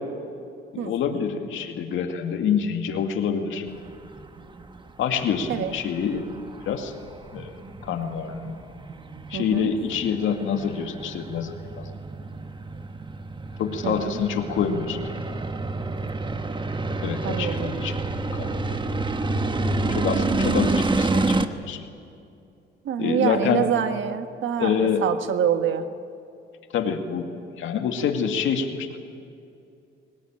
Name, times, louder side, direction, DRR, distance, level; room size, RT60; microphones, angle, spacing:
voice 1, 0.7-3.7 5.0-6.3 6.7-6.9 7.3-7.5 7.8-8.6 9.3-11.8 13.6-15.1 16.9-18.0 18.3-18.8 19.9-21.4 21.7-21.9 23.0-23.7 24.6-25.1 26.7-27.3 27.6-28.9, left 7 dB, 80° left, 4 dB, 2.3 m, -26 dB
sound 1, 3.7-21.5, right 3 dB, 25° right, 1.2 m, -29 dB
voice 2, 9.3-9.7 13.8-14.2 17.2-17.7 22.8-25.8, right 9 dB, 75° right, 8 dB, 1.4 m, -26 dB
22.0 x 19.5 x 8.9 m, 2.6 s
cardioid pair, 90°, 20 cm